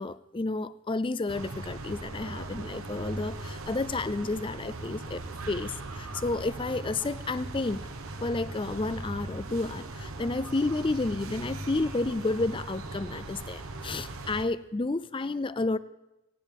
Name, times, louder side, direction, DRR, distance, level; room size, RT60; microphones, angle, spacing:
voice 1, 0.0-5.2 5.5-7.8 8.2-15.8, left 2 dB, 25° left, 15 dB, 0.4 m, -31 dB
sound 1, 1.3-14.5, right 2 dB, 80° right, 1.2 m, -39 dB
18.0 x 17.5 x 3.6 m, 0.97 s
head